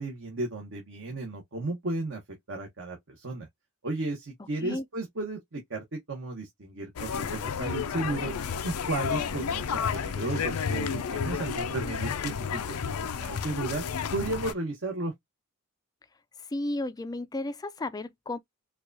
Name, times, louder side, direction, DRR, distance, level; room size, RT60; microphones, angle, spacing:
voice 1, 0.0-2.2 2.5-3.5 3.8-8.4 8.6-12.4 13.2-13.8 14.1-15.1, right 2 dB, 55° right, 1.0 m, -34 dB
sound 1, 7.0-14.5, left 6 dB, 75° left, 0.5 m, -31 dB
voice 2, 16.5-18.4, left 2 dB, 15° left, 0.4 m, -33 dB
4.6 x 2.4 x 2.5 m
head